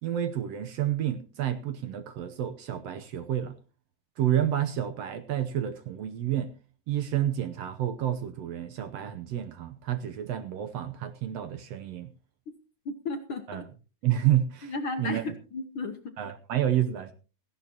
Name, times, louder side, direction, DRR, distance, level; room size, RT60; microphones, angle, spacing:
voice 1, 0.0-3.6 4.2-6.5 6.9-12.1 13.5-13.6 14.0-14.7 15.0-15.2 16.2-17.1, right 11 dB, 70° right, 1.7 m, -29 dB
voice 2, 12.8-13.6 14.6-16.1, left 3 dB, 60° left, 1.4 m, -34 dB
17.0 x 15.0 x 2.9 m
omnidirectional pair, 3.5 m